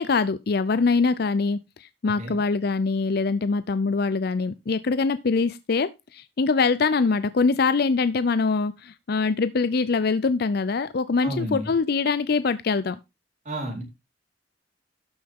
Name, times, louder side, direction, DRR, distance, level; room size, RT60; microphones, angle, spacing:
voice 1, 0.0-13.0, left 4 dB, 60° left, 0.5 m, -23 dB
voice 2, 2.0-2.4 11.2-11.7 13.4-13.8, right 1 dB, 40° right, 4.3 m, -31 dB
12.5 x 6.7 x 3.7 m
head